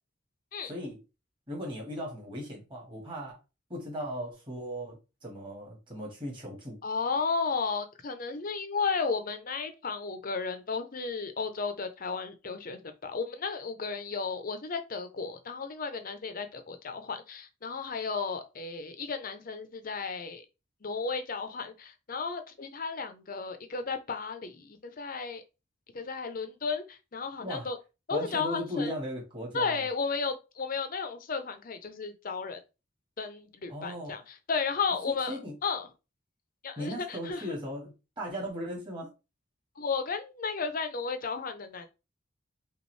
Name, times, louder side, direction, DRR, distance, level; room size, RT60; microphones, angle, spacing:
voice 1, 0.6-1.0 1.5-3.4 3.7-6.8 27.4-27.7 28.1-29.9 33.7-34.2 35.3-35.5 36.8-39.1, equal, 25° right, 1.8 m, -37 dB
voice 2, 6.8-20.4 20.8-25.4 25.9-27.8 28.1-28.9 29.5-32.6 33.2-35.9 36.6-37.6 39.8-41.9, left 4 dB, 45° left, 0.7 m, -34 dB
5.3 x 2.5 x 3.2 m
head